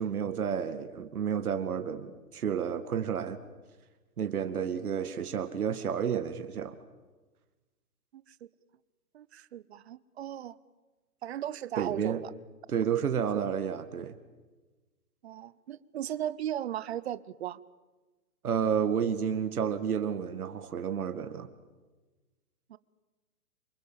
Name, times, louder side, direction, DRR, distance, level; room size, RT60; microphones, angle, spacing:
voice 1, 0.0-3.4 4.2-6.8 11.8-12.2 12.7-14.2 18.4-21.5, right 8 dB, 70° right, 8 dB, 2.2 m, -31 dB
voice 2, 9.1-10.6 11.2-12.3 13.3-13.4 15.2-17.6 22.7-22.8, right 11 dB, 40° right, 18 dB, 1.0 m, -37 dB
29.5 x 26.5 x 7.5 m, 1.2 s
hypercardioid pair, 155°, 47 cm